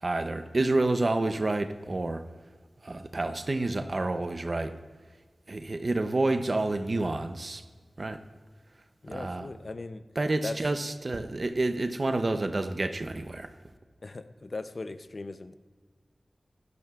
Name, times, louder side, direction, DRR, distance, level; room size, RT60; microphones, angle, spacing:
voice 1, 0.0-2.2 2.8-4.7 5.5-7.6 8.0-8.2 9.1-9.5 10.2-13.5, right 2 dB, 50° right, 8 dB, 0.7 m, -29 dB
voice 2, 9.0-10.0 10.4-10.7 14.0-15.6, left 3 dB, 55° left, 10 dB, 0.6 m, -38 dB
16.5 x 12.0 x 2.4 m, 1.5 s
wide cardioid pair, 85°, 0 cm